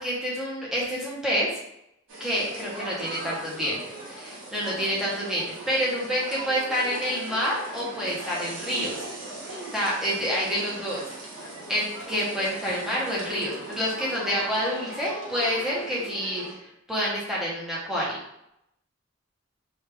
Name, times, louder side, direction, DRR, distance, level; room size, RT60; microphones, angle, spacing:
voice 1, 0.0-1.6 2.2-9.1 9.4-11.1 11.7-16.4 16.9-18.2, equal, ahead, -6 dB, 0.8 m, -28 dB
sound 1, 2.1-16.5, right 1 dB, 80° right, 1.1 m, -39 dB
3.2 x 2.4 x 3.3 m, 0.81 s
head